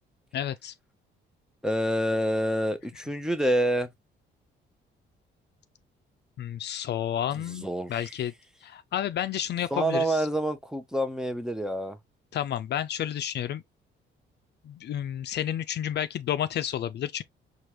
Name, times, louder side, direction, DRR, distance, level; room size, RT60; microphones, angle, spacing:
voice 1, 0.3-0.7 6.4-8.3 8.6-10.3 12.3-13.6 14.6-17.2, left 10 dB, 60° left, 0.4 m, -31 dB
voice 2, 1.6-3.9 7.5-8.1 9.7-12.0, right 1 dB, 5° right, 0.7 m, -27 dB
4.6 x 2.4 x 3.0 m
cardioid pair, 90°, 20 cm